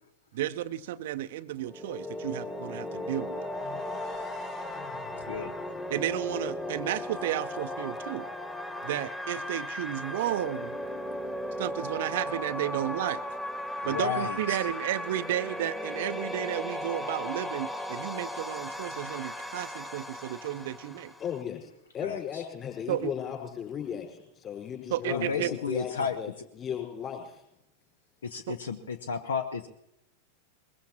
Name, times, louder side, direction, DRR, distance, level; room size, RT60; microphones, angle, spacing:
voice 1, 0.3-3.5 5.9-8.3 8.8-10.8 11.6-13.2 13.9-21.1 22.9-23.1 24.9-25.5 28.5-28.6, right 13 dB, 55° right, 11 dB, 0.6 m, -32 dB
sound 1, 1.5-21.4, left 1 dB, 10° left, 1.6 m, -36 dB
sound 2, 3.5-7.3, left 6 dB, 45° left, 4.6 m, -50 dB
voice 2, 13.8-14.6 22.0-22.4 25.1-26.2 28.2-29.7, left 5 dB, 65° left, 10 dB, 0.7 m, -32 dB
voice 3, 21.2-27.4, left 8 dB, 30° left, 2 dB, 4.7 m, -36 dB
21.5 x 21.0 x 3.0 m, 0.84 s
figure-of-eight pair, 90°, 0 cm